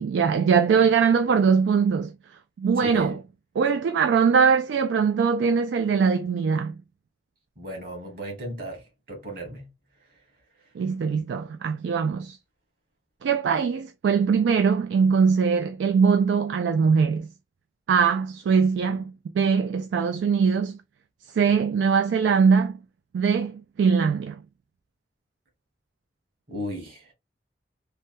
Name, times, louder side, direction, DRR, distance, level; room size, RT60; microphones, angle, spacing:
voice 1, 0.0-2.1 2.6-3.2 3.6-6.8 10.8-12.4 13.2-17.3 17.9-20.8 21.3-22.8 23.1-24.4, right 6 dB, 90° right, 0.3 m, -22 dB
voice 2, 2.8-3.2 7.6-9.7 26.5-27.1, equal, 50° right, 1.4 m, -36 dB
3.3 x 2.2 x 2.5 m
head